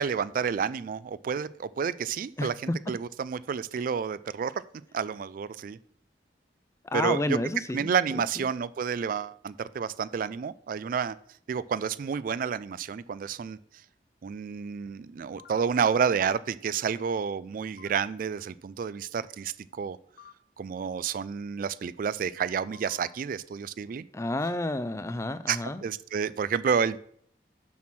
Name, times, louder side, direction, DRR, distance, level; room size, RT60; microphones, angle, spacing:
voice 1, 0.0-4.5 4.9-5.8 6.9-7.4 7.7-11.2 11.5-13.6 14.2-20.0 20.6-24.0 25.5-27.0, right 6 dB, 50° right, 17 dB, 0.3 m, -30 dB
voice 2, 6.8-7.9 8.1-8.4 24.1-25.8, left 2 dB, 15° left, 14 dB, 0.4 m, -30 dB
sound 1, 15.4-15.6 17.8-17.9 20.2-20.3 22.6-23.1, left 9 dB, 80° left, 0.7 m, -50 dB
7.2 x 6.0 x 6.0 m, 0.63 s
head